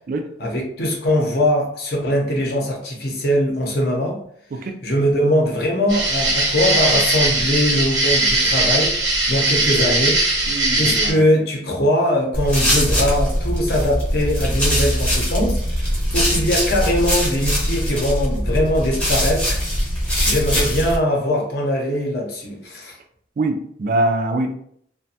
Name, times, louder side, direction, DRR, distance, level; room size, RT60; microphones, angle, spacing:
voice 1, 0.4-4.2 4.8-10.2 10.8-19.6 20.2-23.0, left 1 dB, 55° left, 0 dB, 0.6 m, -21 dB
sound 1, 5.9-11.1, right 2 dB, 85° right, 0.9 m, -19 dB
voice 2, 10.5-11.2 23.4-24.6, right 2 dB, 45° right, 6 dB, 0.3 m, -23 dB
sound 2, 12.3-21.0, equal, 5° left, 0.6 m, -21 dB
2.5 x 2.2 x 2.7 m, 0.66 s
head